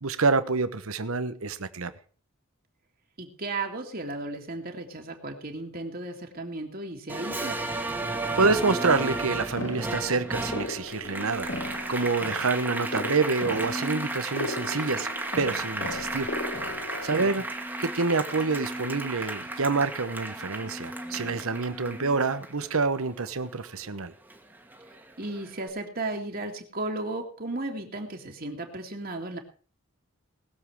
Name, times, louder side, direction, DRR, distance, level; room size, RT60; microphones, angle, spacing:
voice 1, 0.0-1.9 8.4-15.1 15.4-16.3 17.0-17.4 17.8-24.1, right 4 dB, 80° right, 13 dB, 1.1 m, -27 dB
voice 2, 3.2-7.6 17.1-17.3 25.2-29.4, right 2 dB, 45° right, 2 dB, 2.2 m, -35 dB
Applause, 7.1-23.9 24.3-25.5, right 2 dB, 10° right, 1.6 m, -34 dB
sound 1, 8.4-22.4, equal, 10° left, 1.5 m, -42 dB
sound 2, 9.6-17.2, left 2 dB, 55° left, 1.9 m, -37 dB
20.0 x 7.4 x 4.9 m, 0.41 s
head